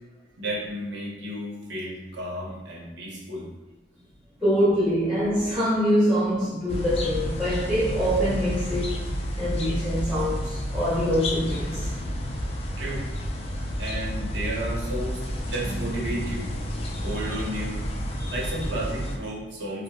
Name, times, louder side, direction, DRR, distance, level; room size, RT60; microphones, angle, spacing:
voice 1, 0.4-3.5 12.8-13.0 13.8-15.2 15.4-16.5 17.0-17.8 18.3-19.8, right 1 dB, 80° right, 0.8 m, -32 dB
voice 2, 4.4-9.1 9.4-11.9 16.9-17.4 18.2-18.6, equal, 5° right, 1.0 m, -25 dB
sound 1, 6.7-19.2, equal, 35° left, 0.4 m, -30 dB
4.5 x 2.0 x 2.3 m
head